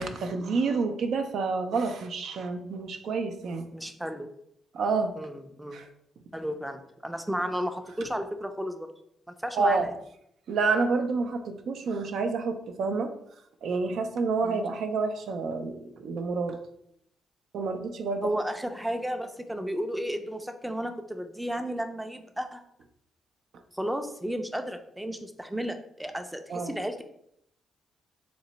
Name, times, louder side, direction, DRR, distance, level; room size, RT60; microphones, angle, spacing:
voice 1, 0.0-3.7 4.7-5.1 5.7-5.9 9.5-9.9 10.5-13.1 13.6-16.6 17.5-18.4 26.5-26.7, right 4 dB, 70° right, 7 dB, 0.3 m, -28 dB
voice 2, 3.7-4.3 5.2-5.8 6.3-8.9 9.4-9.9 14.4-14.7 18.2-22.6 23.7-27.0, equal, 5° right, 6 dB, 0.4 m, -33 dB
3.0 x 2.1 x 3.9 m, 0.74 s
supercardioid pair, 65°, 0 cm